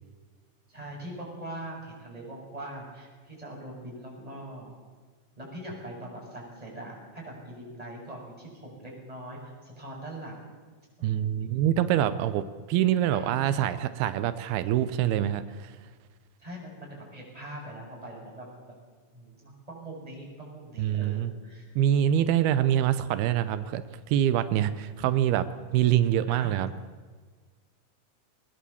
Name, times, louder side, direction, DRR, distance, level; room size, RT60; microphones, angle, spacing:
voice 1, 0.7-4.7 5.4-10.4 11.0-11.6 13.1-13.7 16.4-18.8 19.1-21.6 25.0-25.3 26.3-26.5, right 1 dB, 10° right, -2 dB, 6.4 m, -42 dB
voice 2, 11.0-15.7 20.8-21.3 21.8-25.5 25.7-26.7, right 11 dB, 90° right, 12 dB, 2.8 m, -25 dB
21.5 x 20.0 x 7.1 m, 1.4 s
omnidirectional pair, 4.3 m